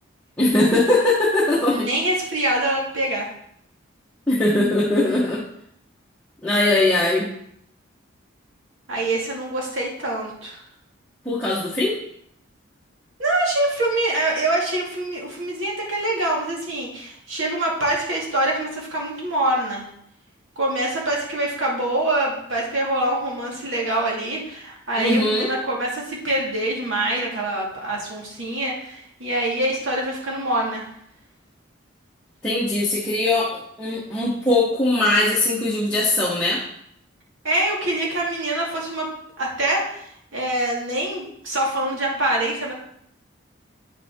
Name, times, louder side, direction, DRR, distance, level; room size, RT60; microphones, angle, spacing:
voice 1, 0.4-1.9 4.3-5.4 6.4-7.3 11.2-12.0 25.0-25.5 32.4-36.6, left 2 dB, 5° left, -8 dB, 1.0 m, -20 dB
voice 2, 1.7-3.3 8.9-10.6 13.2-19.9 20.6-30.9 37.4-39.1 39.4-42.7, right 1 dB, 80° right, -3 dB, 2.2 m, -25 dB
8.4 x 5.6 x 3.6 m, 0.70 s
head